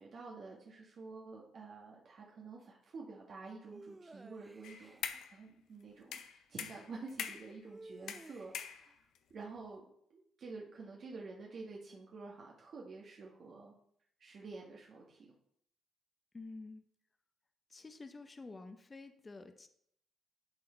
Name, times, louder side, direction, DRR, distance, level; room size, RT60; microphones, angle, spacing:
voice 1, 0.0-13.7 14.2-15.3, right 4 dB, 55° right, -2 dB, 1.5 m, -49 dB
sound 1, 3.7-5.0 7.6-8.8, right 2 dB, 20° right, 0.4 m, -54 dB
sound 2, 4.6-5.4 6.1-7.6 8.1-9.2, left 8 dB, 80° left, 0.6 m, -43 dB
voice 2, 16.3-16.8 17.7-19.7, left 3 dB, 25° left, 8 dB, 0.7 m, -49 dB
11.5 x 3.9 x 4.4 m, 0.68 s
cardioid pair, 90°, 0 cm